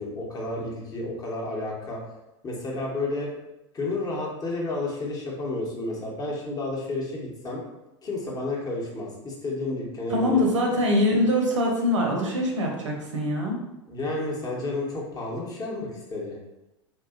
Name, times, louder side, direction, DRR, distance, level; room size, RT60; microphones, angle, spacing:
voice 1, 0.0-2.0 2.4-3.3 3.7-7.6 8.0-10.5 13.9-16.4, left 2 dB, 25° left, -3 dB, 0.8 m, -31 dB
voice 2, 10.1-13.6, left 1 dB, 85° right, 0 dB, 0.6 m, -23 dB
2.6 x 2.2 x 2.4 m, 0.94 s
hypercardioid pair, 90°, 15 cm